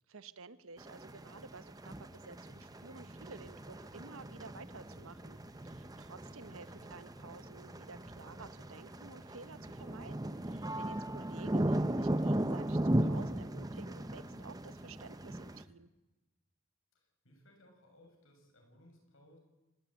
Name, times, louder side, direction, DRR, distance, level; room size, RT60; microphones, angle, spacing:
voice 1, 0.1-15.9, right 4 dB, 85° right, 13 dB, 1.0 m, -52 dB
sound 1, 0.8-15.6, right 1 dB, 20° right, 0.7 m, -37 dB
sound 2, 2.1-15.7, left 1 dB, 55° left, 2.3 m, -61 dB
voice 2, 16.9-19.4, left 1 dB, 75° left, 2 dB, 7.1 m, -62 dB
27.5 x 14.5 x 8.9 m, 1.1 s
head